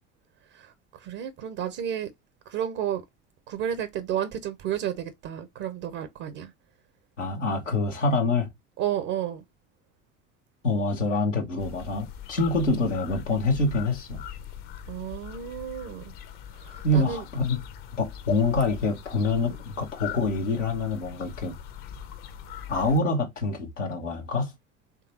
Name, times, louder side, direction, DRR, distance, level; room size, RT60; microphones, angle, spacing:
voice 1, 0.5-2.1 2.5-3.0 3.5-6.5 8.8-9.4 14.9-16.1 16.5-17.2 19.5-19.6, right 10 dB, 55° right, 0.7 m, -32 dB
voice 2, 7.2-8.5 10.6-14.2 16.8-17.6 18.0-21.5 22.7-24.5, left 2 dB, 90° left, 1.0 m, -26 dB
sound 1, 11.6-23.0, left 9 dB, 60° left, 0.9 m, -41 dB
3.7 x 3.3 x 2.8 m
figure-of-eight pair, 65°, 36 cm